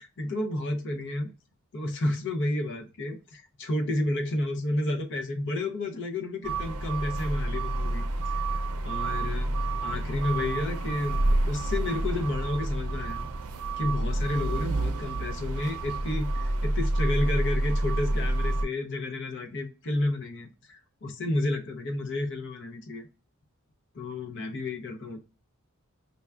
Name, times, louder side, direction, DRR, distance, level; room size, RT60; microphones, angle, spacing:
voice 1, 0.0-1.3 1.7-9.5 9.8-13.3 13.8-23.1 23.9-25.2, left 2 dB, 55° left, 4 dB, 0.6 m, -31 dB
sound 1, 6.4-18.6, right 2 dB, 85° right, 0.5 m, -28 dB
5.3 x 2.2 x 2.3 m, 0.33 s
head